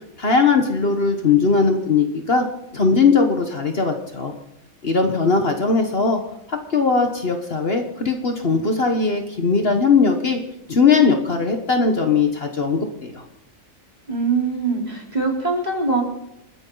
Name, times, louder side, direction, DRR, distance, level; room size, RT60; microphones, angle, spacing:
voice 1, 0.2-2.4 2.7-4.3 4.8-6.2 6.5-10.4 10.7-13.2, left 4 dB, 45° left, 5 dB, 1.5 m, -19 dB
voice 2, 14.1-16.0, right 4 dB, 30° right, -1 dB, 3.9 m, -22 dB
29.0 x 9.9 x 4.0 m, 0.88 s
omnidirectional pair, 1.5 m